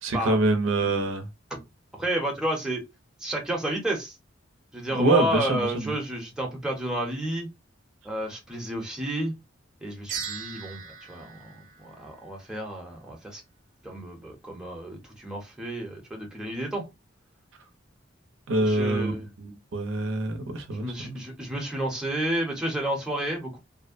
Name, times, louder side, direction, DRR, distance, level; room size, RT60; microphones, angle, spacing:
voice 1, 0.0-1.3 4.9-5.9 18.5-21.2, right 2 dB, 85° right, 0.6 m, -25 dB
voice 2, 2.0-2.8 3.2-4.1 4.7-7.5 8.0-9.3 9.8-10.8 11.1-11.5 11.8-13.4 13.8-16.8 18.6-19.3 20.7-23.6, right 1 dB, 5° right, 0.7 m, -31 dB
sound 1, 10.1-12.6, right 6 dB, 40° right, 0.5 m, -39 dB
2.6 x 2.1 x 2.5 m
head